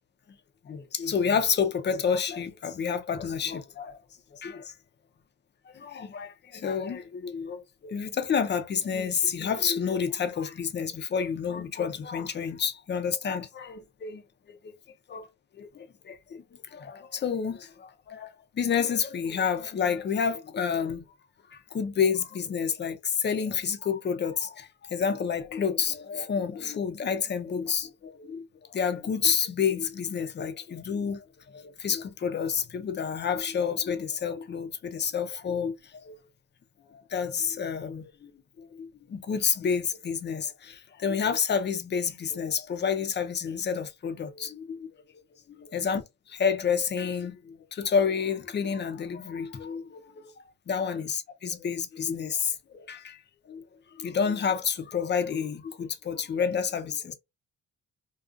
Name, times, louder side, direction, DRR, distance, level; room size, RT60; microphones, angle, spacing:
voice 1, 0.6-4.0 4.3-4.7 5.7-14.2 14.5-14.7 15.1-15.3 15.6-18.3 18.5-21.1 21.5-28.4 28.7-31.2 31.5-36.2 36.9-38.3 38.6-44.9 45.7-46.0 46.3-53.6 53.9-57.1, left 6 dB, 35° left, 0.6 m, -29 dB
2.4 x 2.3 x 2.5 m
cardioid pair, 90°, 30 cm